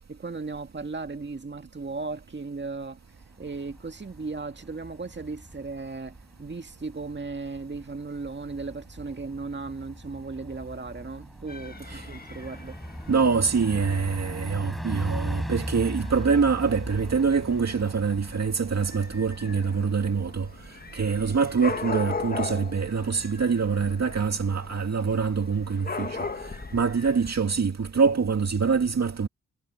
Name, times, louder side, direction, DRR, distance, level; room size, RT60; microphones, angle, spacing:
voice 1, 0.1-3.0 3.4-12.8, right 3 dB, 35° right, 2.1 m, -36 dB
Bus, 3.2-20.3, equal, ahead, 7.9 m, -39 dB
Dog / Cat, 11.5-27.3, left 4 dB, 30° left, 1.5 m, -39 dB
voice 2, 13.1-20.5 20.9-29.3, right 5 dB, 55° right, 2.2 m, -25 dB
cardioid pair, 55°, 31 cm